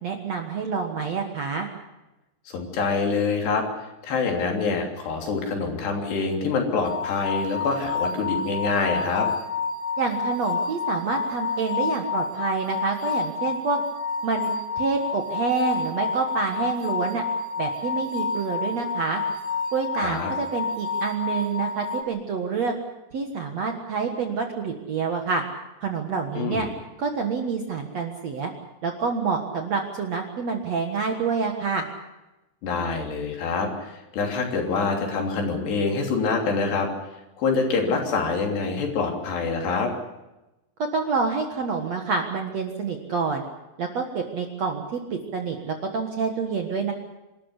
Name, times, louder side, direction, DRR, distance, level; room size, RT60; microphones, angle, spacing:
voice 1, 0.0-1.7 10.0-13.8 14.2-14.5 14.8-17.2 17.6-19.2 19.7-22.8 23.1-25.4 25.8-26.7 27.0-28.5 28.8-31.9 40.9-43.4 43.8-46.9, right 4 dB, 55° right, 4 dB, 2.0 m, -27 dB
voice 2, 2.5-9.3 20.0-20.3 26.4-26.7 32.6-36.9 37.4-39.9, left 4 dB, 75° left, 2 dB, 5.2 m, -26 dB
sound 1, 6.8-22.0, left 4 dB, 55° left, 1.7 m, -29 dB
26.5 x 13.5 x 10.0 m, 1.0 s
omnidirectional pair, 4.9 m